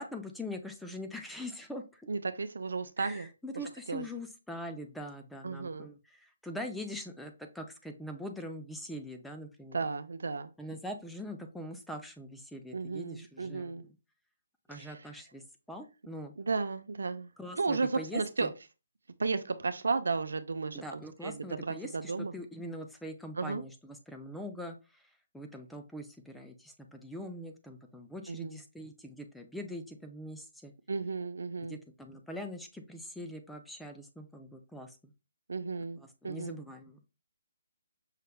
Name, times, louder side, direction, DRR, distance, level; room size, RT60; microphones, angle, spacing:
voice 1, 0.0-2.1 3.0-9.8 10.6-13.8 14.7-15.4 15.7-16.3 17.4-18.5 20.7-30.7 31.7-35.1 36.0-37.0, equal, ahead, 0.5 m, -43 dB
voice 2, 2.1-3.3 3.9-4.0 5.4-5.9 9.7-10.5 12.7-13.8 14.7-14.9 16.4-17.3 17.6-18.5 19.2-22.3 23.4-23.6 28.3-28.6 30.9-31.8 35.5-36.0 36.2-36.5, right 4 dB, 80° right, 0.6 m, -34 dB
5.7 x 3.3 x 2.2 m
hypercardioid pair, 160°, 0 cm